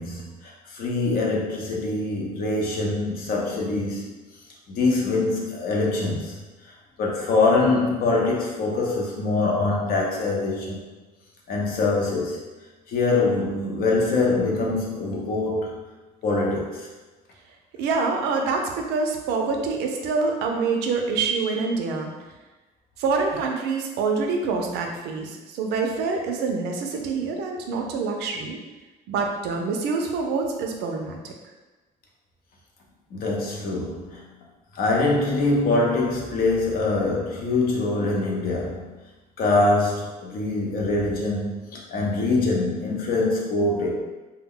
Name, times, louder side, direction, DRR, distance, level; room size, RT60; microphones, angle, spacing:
voice 1, 0.0-4.1 4.7-6.4 6.6-10.8 11.5-12.4 12.9-15.8 16.2-16.9 33.1-34.3 34.7-38.9 39.4-44.0, left 3 dB, 60° left, -2 dB, 0.7 m, -24 dB
voice 2, 17.8-22.1 23.0-28.6 29.1-31.3, right 4 dB, 85° right, 2 dB, 0.4 m, -26 dB
2.2 x 2.1 x 3.6 m, 1.2 s
cardioid pair, 110°, 17 cm